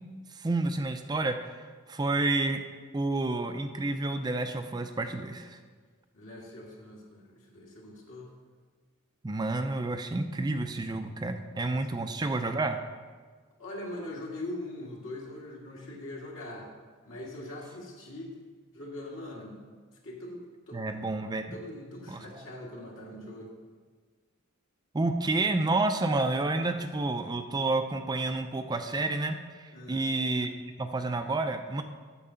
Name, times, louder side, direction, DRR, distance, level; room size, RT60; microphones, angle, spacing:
voice 1, 0.3-2.6 2.9-5.6 9.2-12.8 20.7-21.6 22.1-22.4 24.9-30.5 30.8-31.8, right 2 dB, 20° right, 7 dB, 0.4 m, -30 dB
voice 2, 6.1-8.3 13.6-16.7 17.0-18.3 18.7-19.6 20.0-20.9 21.5-23.5 29.7-30.1, left 1 dB, 65° left, -2 dB, 1.9 m, -42 dB
8.6 x 7.1 x 5.6 m, 1.5 s
head